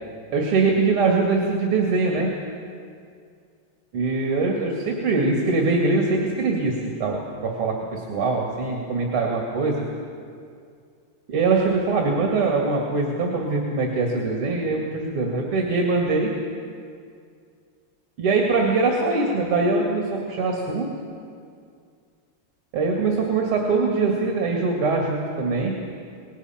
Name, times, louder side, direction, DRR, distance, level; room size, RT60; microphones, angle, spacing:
voice 1, 0.3-2.3 3.9-9.8 11.3-16.3 18.2-20.9 22.7-25.7, right 3 dB, 90° right, 0 dB, 3.0 m, -22 dB
26.5 x 19.5 x 5.8 m, 2.3 s
omnidirectional pair, 2.3 m